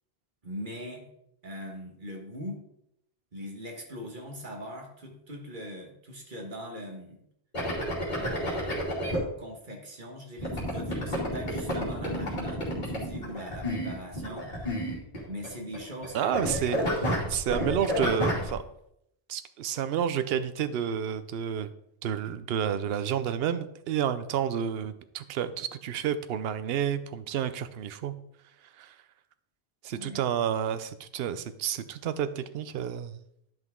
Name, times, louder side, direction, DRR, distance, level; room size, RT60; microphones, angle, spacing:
voice 1, 0.4-1.1 1.4-2.6 3.3-7.2 8.1-8.9 9.4-14.9 15.3-16.4 29.9-30.2, equal, 50° right, 1 dB, 1.6 m, -41 dB
sound 1, 7.5-9.2 10.4-16.1 16.3-18.5, equal, 45° left, 2.6 m, -30 dB
voice 2, 16.1-18.6 19.3-21.7 22.0-28.2 28.8-29.0 29.8-33.2, right 9 dB, 70° right, 12 dB, 0.8 m, -30 dB
10.5 x 5.8 x 3.6 m, 0.76 s
omnidirectional pair, 1.1 m